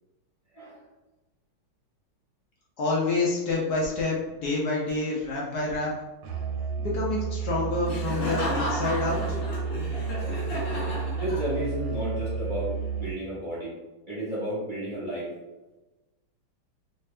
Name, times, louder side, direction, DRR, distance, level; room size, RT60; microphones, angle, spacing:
voice 1, 2.8-5.9 6.8-9.2, left 3 dB, 65° left, -4 dB, 1.0 m, -28 dB
Musical instrument, 6.2-13.3, right 5 dB, 80° right, 1.4 m, -31 dB
Laughter, 7.9-11.8, left 1 dB, 45° left, 0.7 m, -33 dB
voice 2, 11.2-13.7 14.1-15.3, right 1 dB, 30° right, -10 dB, 1.0 m, -32 dB
3.3 x 3.0 x 3.2 m, 1.1 s
omnidirectional pair, 2.3 m